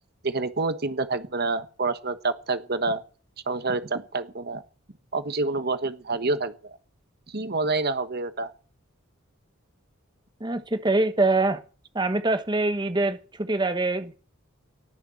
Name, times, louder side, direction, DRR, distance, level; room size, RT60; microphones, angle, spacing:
voice 1, 0.2-3.0 3.5-4.6 5.1-6.8 7.3-8.5, right 3 dB, 50° right, 11 dB, 1.3 m, -27 dB
voice 2, 10.4-11.6 11.9-14.1, right 2 dB, 20° right, 10 dB, 1.1 m, -24 dB
18.5 x 6.7 x 7.8 m, 0.38 s
head